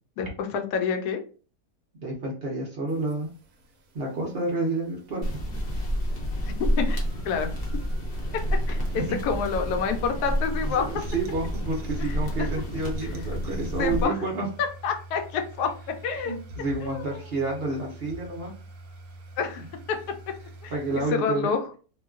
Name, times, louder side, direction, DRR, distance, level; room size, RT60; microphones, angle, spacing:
voice 1, 0.2-1.2 6.5-7.5 8.3-8.4 8.7-10.9 12.0-12.1 12.4-12.5 13.8-14.2 14.8-16.4 16.8-17.0 19.4-20.3 20.6-20.7 21.1-21.6, left 6 dB, 75° left, 5 dB, 1.1 m, -28 dB
voice 2, 2.0-3.3 3.9-5.2 8.9-9.2 10.7-14.5 16.2-18.5 20.7-21.5, right 2 dB, 55° right, -2 dB, 0.7 m, -29 dB
sound 1, 2.9-21.1, right 1 dB, 70° right, 1.0 m, -46 dB
sound 2, 5.2-14.0, equal, 45° left, 0.8 m, -29 dB
2.9 x 2.3 x 2.3 m, 0.38 s
omnidirectional pair, 1.8 m